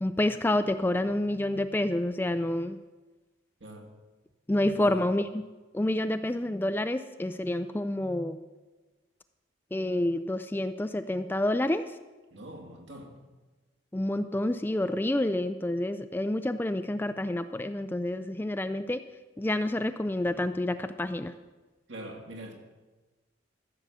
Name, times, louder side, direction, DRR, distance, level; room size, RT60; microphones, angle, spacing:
voice 1, 0.0-2.8 4.5-5.4 5.7-8.4 9.7-11.8 13.9-19.0 19.4-21.3, left 1 dB, 10° left, 10 dB, 0.3 m, -28 dB
voice 2, 3.6-4.0 4.7-5.1 12.3-13.2 21.9-22.5, right 1 dB, 70° right, 1 dB, 2.3 m, -43 dB
14.5 x 6.9 x 7.4 m, 1.2 s
head